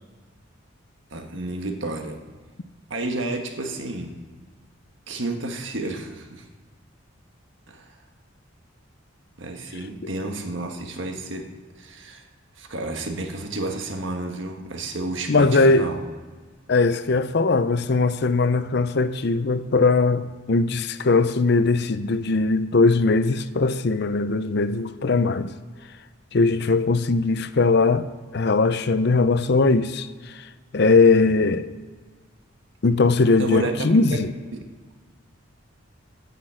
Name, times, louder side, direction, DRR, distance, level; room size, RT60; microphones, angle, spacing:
voice 1, 1.1-2.2 2.9-4.2 5.1-6.5 7.7-7.9 9.4-11.5 11.8-12.3 12.6-16.0 31.3-31.4 33.4-33.7 34.1-34.2, right 2 dB, 65° right, 1.5 m, -31 dB
voice 2, 15.3-15.9 16.7-25.5 26.3-28.1 28.3-31.7 32.8-34.3, left 3 dB, 55° left, 0.5 m, -20 dB
9.8 x 8.6 x 7.7 m
head